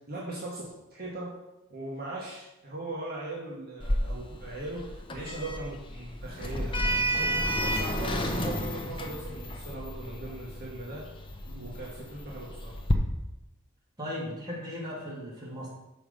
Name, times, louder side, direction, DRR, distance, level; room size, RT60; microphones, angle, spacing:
voice 1, 0.1-1.3 1.7-7.3 7.6-11.1 11.5-12.7, right 2 dB, 45° right, -6 dB, 1.4 m, -39 dB
Sliding door, 3.8-12.9, equal, 25° left, 0.7 m, -32 dB
voice 2, 14.0-15.7, left 1 dB, 20° right, -6 dB, 2.4 m, -37 dB
5.9 x 5.0 x 6.7 m, 0.98 s
head